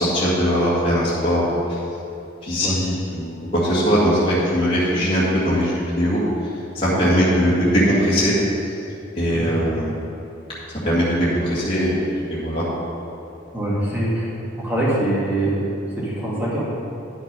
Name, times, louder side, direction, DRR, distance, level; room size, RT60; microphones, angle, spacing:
voice 1, 0.0-1.8 2.4-6.2 6.7-8.4 8.6-8.7 9.1-9.9 10.8-12.0 12.3-12.6, equal, 30° left, -10 dB, 2.0 m, -20 dB
voice 2, 13.5-14.3 14.6-16.6, right 1 dB, 10° right, -8 dB, 2.4 m, -23 dB
10.0 x 6.3 x 5.4 m, 2.8 s
head